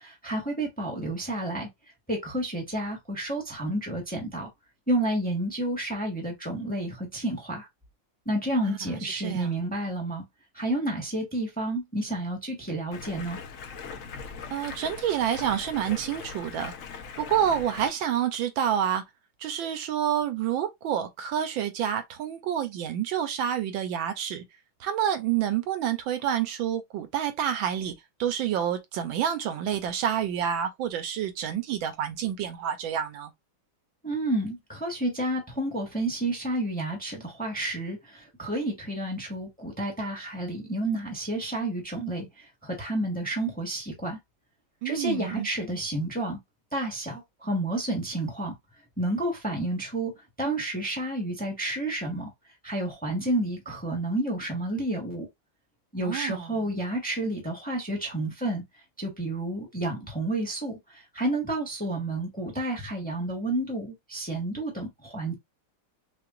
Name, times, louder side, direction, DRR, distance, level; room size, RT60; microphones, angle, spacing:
voice 1, 0.0-1.7 2.1-4.5 4.9-7.7 8.2-10.2 10.5-13.4 34.0-44.2 44.8-46.4 46.7-48.5 49.0-52.3 52.6-55.3 55.9-58.6 59.0-65.3, right 1 dB, 5° left, 1.1 m, -30 dB
voice 2, 8.6-9.6 14.5-16.7 17.2-19.0 19.4-24.4 24.8-27.9 28.2-33.3 44.8-45.5 56.0-56.6, right 9 dB, 75° right, 1.4 m, -28 dB
Stream, 12.9-17.9, left 5 dB, 70° left, 0.7 m, -40 dB
5.7 x 2.4 x 2.5 m
omnidirectional pair, 2.2 m